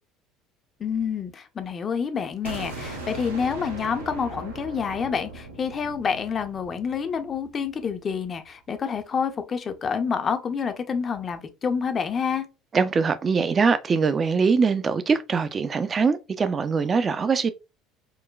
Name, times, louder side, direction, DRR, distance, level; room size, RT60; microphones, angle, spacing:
voice 1, 0.8-12.5, left 6 dB, 35° left, 0.5 m, -28 dB
sound 1, 2.4-8.2, right 2 dB, 80° right, 0.7 m, -39 dB
voice 2, 12.7-17.5, right 5 dB, 30° right, 0.3 m, -22 dB
3.8 x 2.2 x 2.2 m
figure-of-eight pair, 60°, 0 cm